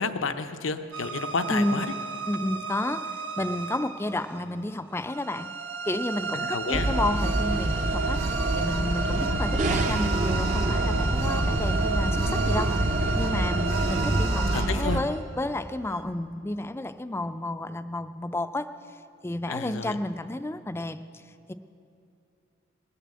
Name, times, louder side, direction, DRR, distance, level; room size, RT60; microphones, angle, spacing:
voice 1, 0.0-1.9 6.5-6.9 9.1-9.3 14.5-15.0 19.5-20.0, left 4 dB, 75° left, 9 dB, 0.7 m, -30 dB
sound 1, 0.9-16.0, right 5 dB, 80° right, 1.3 m, -35 dB
voice 2, 1.5-1.9 2.3-5.5 5.8-8.2 8.6-18.7 19.2-21.2 21.5-21.6, left 1 dB, 10° left, 10 dB, 0.4 m, -31 dB
sound 2, 6.7-15.0, right 1 dB, 40° right, 0.6 m, -27 dB
sound 3, 6.7-14.6, right 3 dB, 55° right, 1.1 m, -32 dB
20.0 x 6.8 x 7.5 m, 2.6 s
head